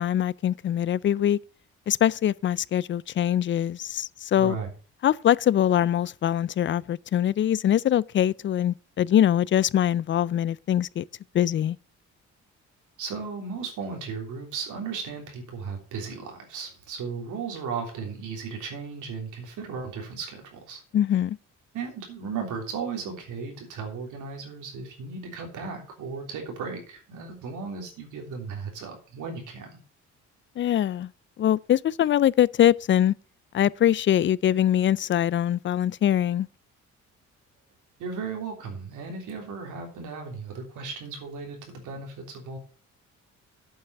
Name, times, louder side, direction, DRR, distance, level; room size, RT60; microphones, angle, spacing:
voice 1, 0.0-1.4 1.9-4.6 5.0-11.0 11.3-11.8 20.9-21.4 30.6-31.1 31.4-33.1 33.5-36.5, left 11 dB, 40° left, 0.4 m, -23 dB
voice 2, 4.3-4.7 13.0-20.8 21.7-29.7 38.0-42.6, right 5 dB, 80° right, 3.3 m, -36 dB
8.8 x 5.8 x 6.5 m
cardioid pair, 90°, 30 cm